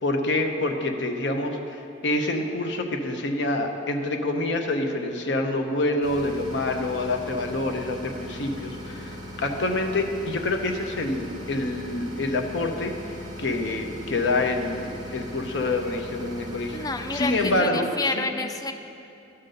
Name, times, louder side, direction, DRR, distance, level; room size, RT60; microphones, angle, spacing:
voice 1, 0.0-18.3, left 2 dB, 70° left, 5 dB, 0.7 m, -27 dB
sound 1, 6.0-17.6, equal, 20° right, 1.2 m, -39 dB
voice 2, 16.7-18.7, left 3 dB, 20° left, 7 dB, 0.4 m, -29 dB
11.0 x 3.9 x 6.5 m, 2.6 s
head